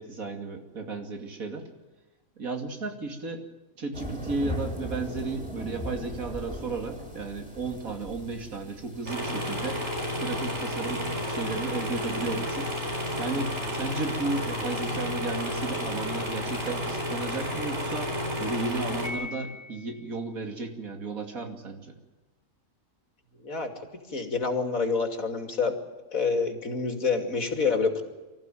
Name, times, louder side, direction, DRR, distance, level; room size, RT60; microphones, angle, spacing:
voice 1, 0.0-1.7 2.4-3.5 3.8-9.8 10.2-12.7 13.2-18.1 18.4-22.0, right 3 dB, 85° right, 4 dB, 3.1 m, -34 dB
sound 1, 3.9-16.6, left 1 dB, 5° right, 4.4 m, -42 dB
sound 2, 9.1-19.1, left 1 dB, 55° right, 5.4 m, -31 dB
Piano, 19.0-20.2, left 2 dB, 30° left, 1.8 m, -39 dB
voice 2, 24.1-25.7 26.1-28.0, left 4 dB, 80° left, 5 dB, 3.0 m, -27 dB
24.0 x 14.5 x 9.2 m, 1.2 s
omnidirectional pair, 1.4 m